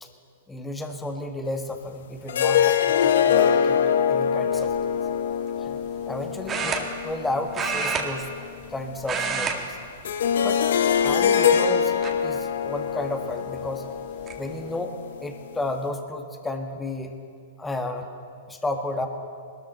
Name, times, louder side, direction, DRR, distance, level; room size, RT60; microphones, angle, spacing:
voice 1, 0.5-3.8 4.1-4.7 5.6-8.3 8.7-9.8 10.4-10.7 11.0-13.9 14.4-14.9 15.2-17.2 17.6-18.1 18.5-19.1, left 2 dB, 10° left, 4 dB, 1.5 m, -32 dB
sound 1, 2.3-8.2 10.0-15.3, left 8 dB, 70° left, 0.8 m, -24 dB
sound 2, 4.5-4.8 6.5-7.3 7.5-8.7 9.0-9.6 9.9-10.1 10.9-11.5 12.0-12.1 13.6-13.7 14.0-14.4, right 5 dB, 25° right, 1.6 m, -29 dB
21.0 x 13.0 x 4.3 m, 2.3 s
hypercardioid pair, 115°, 0 cm